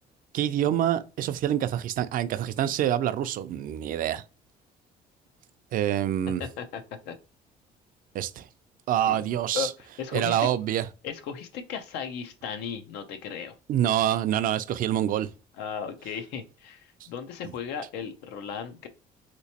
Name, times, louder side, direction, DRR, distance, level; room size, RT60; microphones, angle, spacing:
voice 1, 0.3-4.2 5.7-6.4 8.1-8.4 8.9-9.7 10.1-10.9 13.7-15.3, right 11 dB, 55° right, 0.4 m, -26 dB
voice 2, 6.4-7.2 9.1-9.2 9.5-10.5 11.0-13.5 15.6-18.9, left 7 dB, 90° left, 0.6 m, -36 dB
3.3 x 2.9 x 2.8 m
cardioid pair, 110°, 17 cm